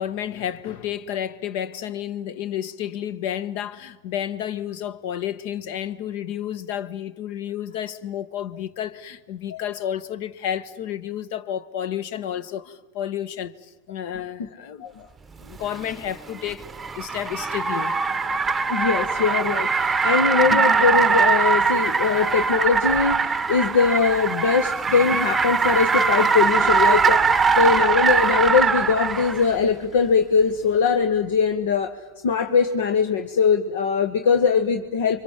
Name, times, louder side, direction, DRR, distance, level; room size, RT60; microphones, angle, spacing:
voice 1, 0.0-13.5 13.9-15.1 15.4-16.7 16.9-18.0, left 10 dB, 65° left, 1.4 m, -31 dB
Car, 15.5-29.5, right 5 dB, 15° right, 0.8 m, -21 dB
voice 2, 18.7-23.2 23.5-31.9 32.2-35.2, left 5 dB, 85° left, 1.5 m, -21 dB
29.5 x 25.0 x 7.5 m
supercardioid pair, 135°, 0 cm